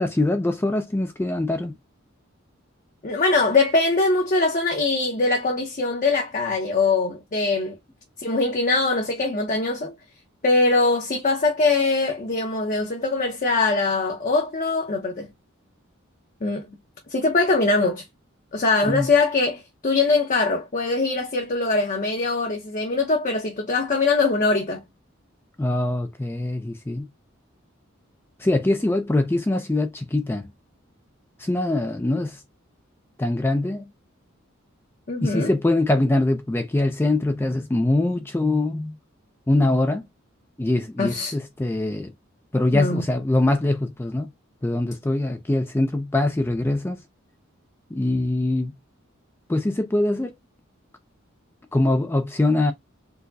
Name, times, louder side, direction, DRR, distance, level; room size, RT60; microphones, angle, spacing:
voice 1, 0.0-1.7 18.9-19.1 25.6-27.0 28.4-30.5 31.4-32.4 33.2-33.8 35.2-38.9 39.5-40.0 40.6-42.1 42.5-44.3 44.6-47.0 47.9-48.7 49.5-50.3 51.7-52.7, left 2 dB, 10° left, 0.4 m, -23 dB
voice 2, 3.0-7.7 8.2-9.9 10.4-15.3 16.4-16.7 17.1-18.0 18.5-24.8 35.1-35.5 41.0-41.3 42.7-43.1, left 3 dB, 40° left, 0.7 m, -22 dB
4.5 x 2.1 x 2.6 m
head